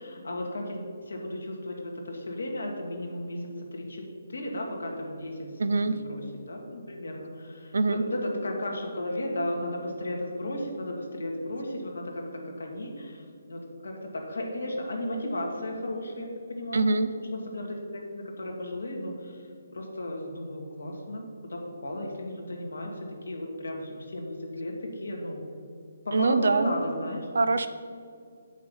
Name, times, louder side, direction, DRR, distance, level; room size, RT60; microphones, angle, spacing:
voice 1, 0.0-4.0 4.3-16.9 17.1-25.4 26.0-27.3, left 1 dB, 85° left, 0 dB, 1.9 m, -35 dB
voice 2, 5.6-6.0 7.7-8.0 16.7-17.1 26.1-26.7 27.3-27.7, right 3 dB, 75° right, 11 dB, 0.6 m, -23 dB
7.2 x 6.2 x 5.5 m, 2.3 s
hypercardioid pair, 155°, 0 cm